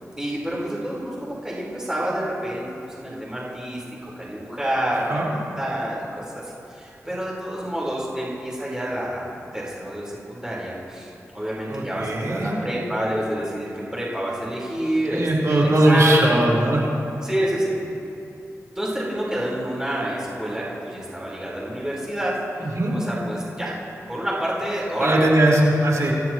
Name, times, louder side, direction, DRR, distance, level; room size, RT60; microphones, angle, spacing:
voice 1, 0.2-3.8 4.2-6.2 6.7-9.3 9.5-16.4 17.2-17.8 18.7-22.4 22.9-23.7 24.1-25.2, right 1 dB, 10° right, -7 dB, 4.5 m, -28 dB
voice 2, 11.7-12.5 15.1-16.8 22.6-23.0 25.0-26.1, right 1 dB, 70° right, -4 dB, 4.4 m, -19 dB
26.5 x 15.0 x 3.2 m, 2.8 s
wide cardioid pair, 65°, 6 cm